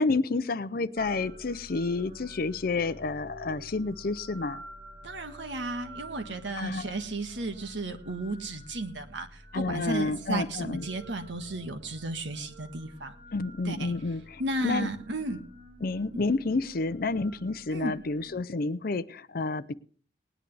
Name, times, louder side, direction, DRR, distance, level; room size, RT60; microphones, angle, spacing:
voice 1, 0.0-4.6 6.6-6.9 9.5-10.8 13.3-14.9 15.8-19.7, left 3 dB, 50° left, 15 dB, 0.6 m, -30 dB
sound 1, 1.0-18.4, right 1 dB, 35° right, 2.5 m, -49 dB
voice 2, 5.0-13.2 13.6-13.9 14.4-15.4 16.1-16.2 17.7-17.9, right 2 dB, 75° right, 7 dB, 1.5 m, -34 dB
19.5 x 9.8 x 3.4 m, 0.43 s
head